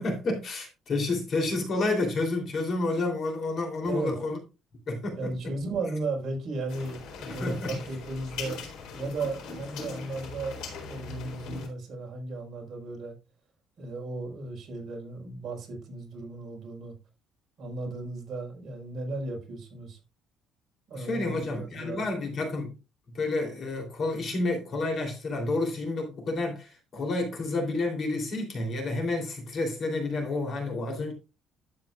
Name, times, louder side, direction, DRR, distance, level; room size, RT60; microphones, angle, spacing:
voice 1, 0.0-4.4 4.9-5.5 7.3-7.7 20.9-22.7 23.1-31.1, left 2 dB, 40° left, 3.2 m, -30 dB
voice 2, 3.8-4.1 5.1-8.6 8.9-13.1 13.8-16.9 17.6-20.0 20.9-22.2, right 2 dB, 40° right, 4.5 m, -35 dB
sound 1, 6.7-11.7, left 4 dB, 85° left, 4.0 m, -40 dB
12.0 x 8.7 x 2.4 m
cardioid pair, 170°, 0 cm